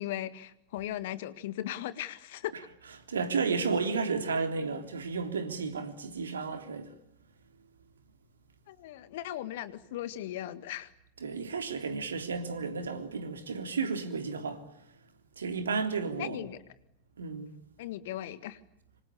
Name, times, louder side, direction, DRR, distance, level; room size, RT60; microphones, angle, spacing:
voice 1, 0.0-2.5 8.7-10.9 16.2-16.6 17.8-18.6, left 13 dB, 55° left, 1.8 m, -37 dB
voice 2, 3.1-6.9 11.2-14.6 15.4-16.5 17.2-17.5, right 4 dB, 70° right, 3.3 m, -32 dB
26.0 x 26.0 x 8.5 m
figure-of-eight pair, 90°, 0 cm